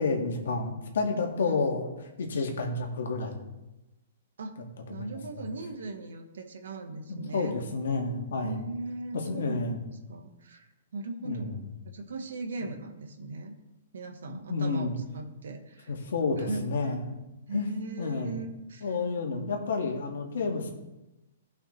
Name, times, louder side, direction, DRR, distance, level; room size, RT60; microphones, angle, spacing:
voice 1, 0.0-3.4 4.9-5.5 7.1-8.6 9.1-9.8 11.2-11.6 14.3-14.9 15.9-17.0 17.5-17.7 18.0-18.3 18.8-20.7, left 3 dB, 80° left, 2 dB, 1.8 m, -30 dB
voice 2, 4.9-7.5 8.4-9.6 10.1-10.7 10.9-11.6 11.9-13.5 13.9-15.9 16.4-16.7 17.5-18.9, right 3 dB, 85° right, 6 dB, 1.3 m, -38 dB
15.5 x 5.7 x 3.3 m, 0.99 s
hypercardioid pair, 165°, 0 cm